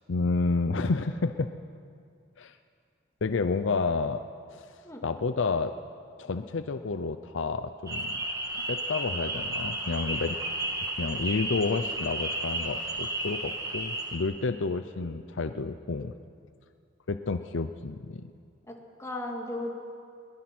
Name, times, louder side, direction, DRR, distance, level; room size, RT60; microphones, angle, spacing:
voice 1, 0.0-1.5 2.4-2.6 3.2-4.2 4.5-4.7 5.0-5.7 6.2-8.2 8.5-10.4 11.0-16.1 17.1-18.2, left 4 dB, 65° left, 10 dB, 0.6 m, -30 dB
sound 1, 7.9-14.2, right 1 dB, 20° right, 2.0 m, -33 dB
voice 2, 18.7-19.7, left 1 dB, 15° left, 1 dB, 2.3 m, -36 dB
21.5 x 19.5 x 6.1 m, 2.3 s
head